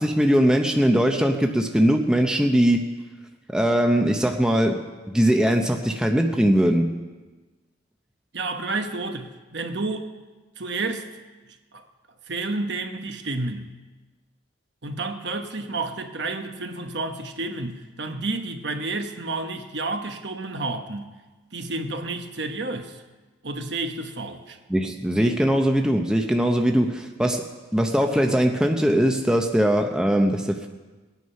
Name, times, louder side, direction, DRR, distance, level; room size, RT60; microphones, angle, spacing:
voice 1, 0.0-2.8 3.5-4.8 5.1-6.9 24.7-30.7, equal, 5° right, 3 dB, 0.7 m, -21 dB
voice 2, 8.3-10.1 10.6-11.1 11.7-11.9 12.3-13.7 14.8-21.1 21.5-23.0 23.4-24.6, right 2 dB, 60° right, 6 dB, 1.1 m, -30 dB
20.5 x 9.5 x 5.6 m, 1.3 s
head